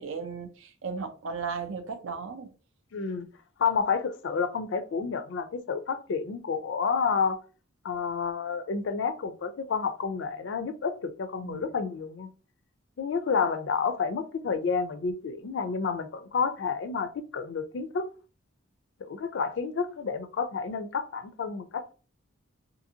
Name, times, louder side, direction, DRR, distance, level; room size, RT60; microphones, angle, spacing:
voice 1, 0.0-2.5 11.4-11.7, right 5 dB, 70° right, 0.5 m, -36 dB
voice 2, 2.9-3.3 3.6-7.4 7.8-12.3 13.0-18.1 19.1-21.9, left 5 dB, 60° left, 0.3 m, -30 dB
2.7 x 2.6 x 2.7 m
head